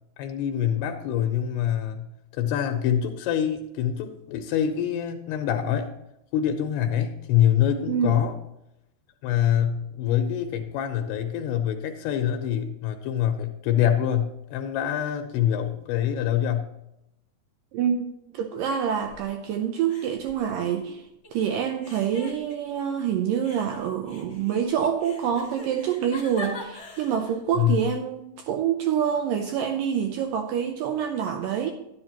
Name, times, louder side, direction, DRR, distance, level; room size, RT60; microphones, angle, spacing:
voice 1, 0.2-2.1 2.3-5.9 6.3-8.3 9.2-16.7 27.6-27.8, left 10 dB, 80° left, 5 dB, 2.8 m, -25 dB
voice 2, 17.7-21.0 21.3-31.7, right 8 dB, 85° right, 5 dB, 1.9 m, -26 dB
sound 1, 19.0-19.6 19.9-21.3 21.8-23.0 23.4-27.4, left 1 dB, 55° left, 0.7 m, -42 dB
11.5 x 10.5 x 2.9 m, 0.84 s
omnidirectional pair, 4.8 m